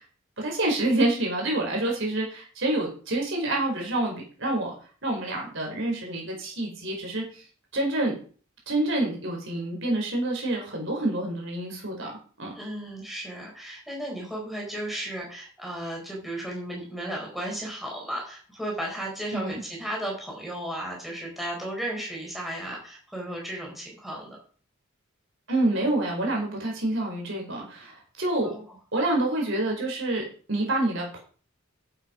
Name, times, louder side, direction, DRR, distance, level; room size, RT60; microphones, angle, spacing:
voice 1, 0.4-4.7 5.0-7.2 7.7-8.1 8.7-12.1 12.4-12.5 19.3-19.6 25.5-28.5 28.9-31.2, right 2 dB, 60° right, 0 dB, 4.7 m, -27 dB
voice 2, 12.5-24.4 28.4-28.8, right 1 dB, ahead, -3 dB, 4.6 m, -34 dB
11.0 x 8.0 x 5.2 m, 0.42 s
head